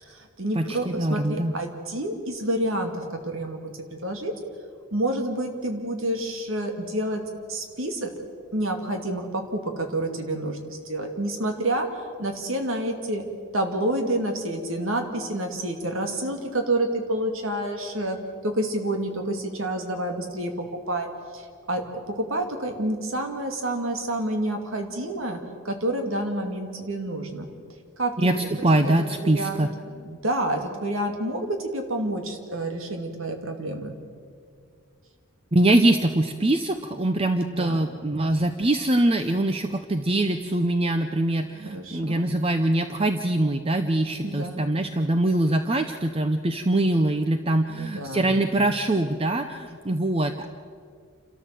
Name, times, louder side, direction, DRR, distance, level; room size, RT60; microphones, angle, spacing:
voice 1, 0.0-3.6 4.0-4.3 4.9-7.2 7.5-8.1 8.5-13.2 13.5-18.2 18.4-20.5 20.9-21.1 21.3-21.8 22.1-25.4 25.6-27.5 28.0-28.6 29.2-34.0 37.5-37.8 41.6-42.2 44.2-44.7 47.8-48.4, right 1 dB, 70° right, 4 dB, 2.5 m, -28 dB
voice 2, 0.6-1.5 28.2-29.7 35.5-50.5, right 1 dB, 25° right, 7 dB, 0.7 m, -23 dB
28.0 x 13.5 x 7.7 m, 2.2 s
head